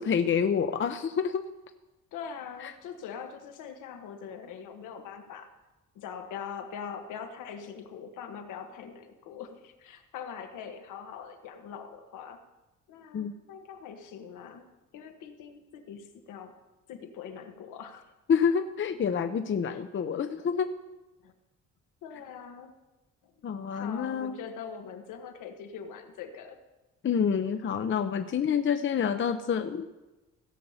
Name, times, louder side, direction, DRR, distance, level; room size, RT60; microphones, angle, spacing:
voice 1, 0.0-1.4 2.6-2.7 13.1-13.3 18.3-20.7 23.4-24.3 27.0-29.9, left 7 dB, 40° left, 9 dB, 0.7 m, -27 dB
voice 2, 2.1-5.5 5.9-12.4 12.9-14.7 14.9-16.6 16.9-18.0 19.7-19.8 21.2-21.3 22.0-22.7 23.2-23.3 23.6-26.6, left 7 dB, 90° left, 6 dB, 1.5 m, -42 dB
16.5 x 6.7 x 5.7 m, 1.1 s
cardioid pair, 90°, 30 cm